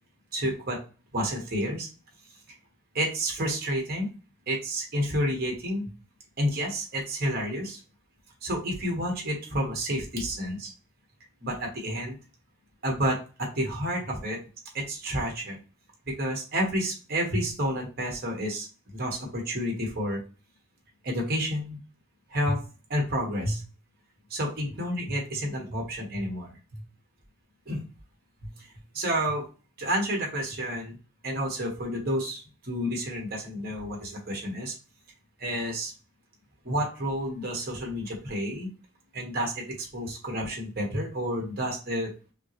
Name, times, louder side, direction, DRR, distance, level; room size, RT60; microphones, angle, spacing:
voice 1, 0.3-0.8 1.1-1.9 2.9-4.1 4.5-5.9 6.4-7.8 8.4-10.7 11.4-12.2 12.8-14.4 14.7-15.6 16.1-20.2 21.0-21.8 22.3-22.6 22.9-23.6 24.3-26.8 27.7-27.9 28.4-28.7 28.9-29.4 29.8-31.0 31.2-34.7 35.4-35.9 36.6-38.7 39.1-42.1, equal, 45° right, 0 dB, 1.3 m, -30 dB
5.6 x 2.0 x 3.0 m, 0.34 s
head